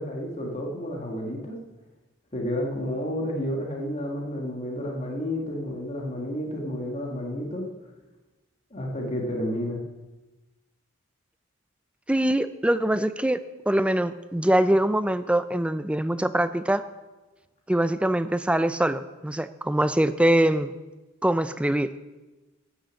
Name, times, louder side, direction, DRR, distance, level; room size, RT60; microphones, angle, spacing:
voice 1, 0.0-1.6 2.3-7.6 8.7-9.8, equal, 35° left, 0 dB, 1.7 m, -31 dB
voice 2, 12.1-16.8 17.7-20.7 21.2-21.9, right 1 dB, 5° right, 12 dB, 0.4 m, -23 dB
12.5 x 6.4 x 8.1 m, 1.2 s
head